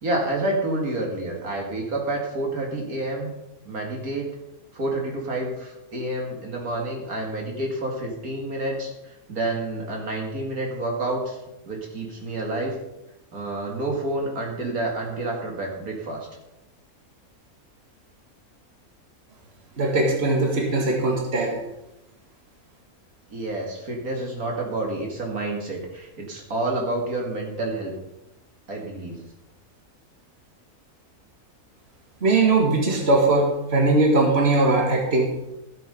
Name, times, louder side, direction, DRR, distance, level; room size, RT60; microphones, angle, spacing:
voice 1, 0.0-3.3 3.6-4.3 4.7-11.4 11.7-12.8 13.3-16.3 23.3-27.9 28.7-29.2, right 2 dB, 80° right, 0 dB, 2.7 m, -29 dB
voice 2, 19.8-21.6 32.2-35.3, right 2 dB, 45° right, 1 dB, 2.2 m, -20 dB
13.0 x 7.7 x 5.3 m, 0.91 s
omnidirectional pair, 1.5 m